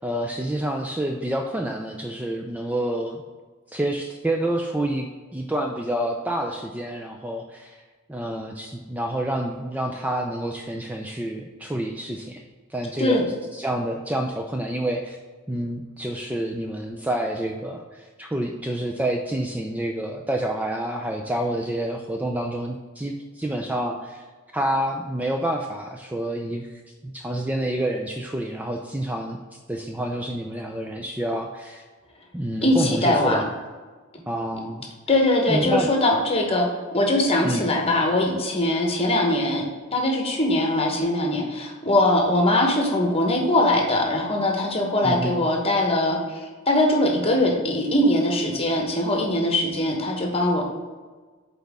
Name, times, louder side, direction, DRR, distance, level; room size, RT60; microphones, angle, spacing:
voice 1, 0.0-3.2 3.7-7.8 8.1-12.4 12.7-13.2 13.5-15.2 15.5-24.2 24.5-29.4 29.7-31.8 32.3-33.5 34.3-34.8 35.5-35.9 37.4-37.6 45.0-45.4, right 1 dB, 10° right, 2 dB, 0.4 m, -28 dB
voice 2, 32.6-33.4 35.1-36.7 36.9-39.6 39.9-50.6, left 1 dB, 30° left, 1 dB, 1.1 m, -21 dB
7.8 x 4.1 x 3.5 m, 1.4 s
head